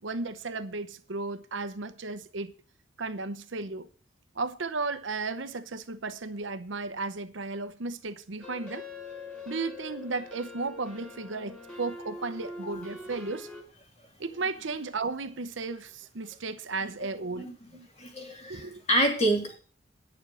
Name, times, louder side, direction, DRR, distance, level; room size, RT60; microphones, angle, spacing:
voice 1, 0.0-2.5 3.0-3.9 4.3-8.9 9.5-13.5 14.2-17.9 18.5-18.8, right 3 dB, 75° right, 0.9 m, -34 dB
sound 1, 8.4-13.6, left 2 dB, 5° left, 3.8 m, -43 dB
voice 2, 18.0-19.6, right 1 dB, 35° left, 3.0 m, -27 dB
9.5 x 7.0 x 7.7 m
head